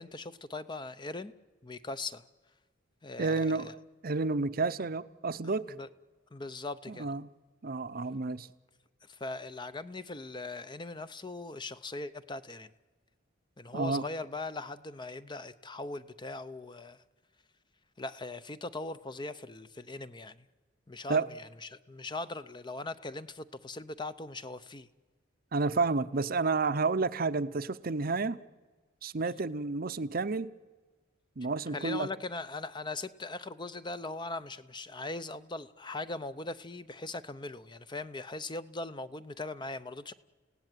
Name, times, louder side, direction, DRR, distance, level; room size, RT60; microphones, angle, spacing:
voice 1, 0.0-1.3 1.6-2.2 3.0-3.7 5.4-5.9 6.3-7.2 9.0-12.7 13.6-17.0 18.0-20.4 20.9-24.9 31.7-40.1, left 2 dB, 25° left, 13 dB, 0.7 m, -40 dB
voice 2, 3.2-3.7 4.0-5.7 6.9-7.3 7.6-8.5 13.7-14.1 21.1-21.3 25.5-28.4 29.0-30.5 31.4-32.1, right 3 dB, 50° right, 13 dB, 0.7 m, -30 dB
29.5 x 17.0 x 9.2 m, 1.4 s
head